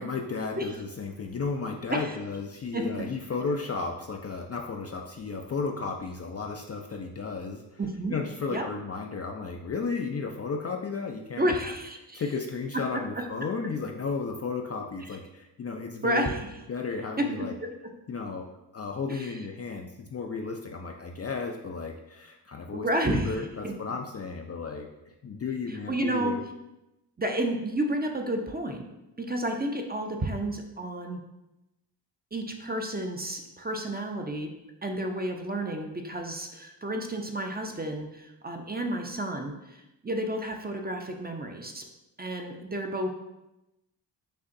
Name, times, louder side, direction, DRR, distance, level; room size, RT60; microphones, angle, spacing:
voice 1, 0.0-7.6 8.1-11.6 12.1-16.3 16.7-17.5 18.1-18.4 18.7-24.9 25.2-26.4, left 4 dB, 35° left, 2 dB, 0.4 m, -33 dB
voice 2, 2.7-3.0 7.8-8.2 8.5-8.6 11.4-12.2 16.0-16.4 17.2-17.7 19.1-19.3 22.7-23.4 23.6-23.7 25.7-26.3 27.2-28.9 29.2-31.2 32.3-34.5 34.8-41.8 42.2-43.1, right 1 dB, 20° right, 3 dB, 0.5 m, -31 dB
6.5 x 2.5 x 2.6 m, 0.94 s
supercardioid pair, 50°, 49 cm